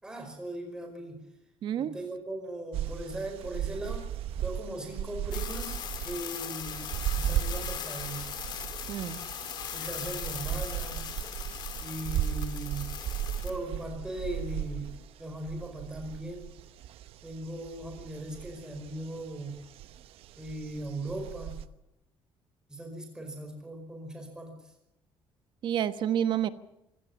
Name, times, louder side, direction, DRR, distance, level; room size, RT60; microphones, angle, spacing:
voice 1, 0.0-1.2 1.8-4.1 4.4-6.8 7.1-8.3 9.7-11.1 11.8-12.9 13.4-14.9 15.2-16.5 17.2-19.6 20.4-21.6 22.7-24.6, right 1 dB, 5° right, 4 dB, 5.1 m, -39 dB
voice 2, 1.6-1.9 8.9-9.2 25.6-26.5, right 10 dB, 50° right, 12 dB, 1.2 m, -29 dB
sound 1, 2.7-21.7, right 10 dB, 70° right, 0.9 m, -36 dB
sound 2, 5.3-13.5, left 9 dB, 45° left, 2.2 m, -39 dB
25.5 x 17.5 x 7.2 m, 0.86 s
cardioid pair, 175°, 10 cm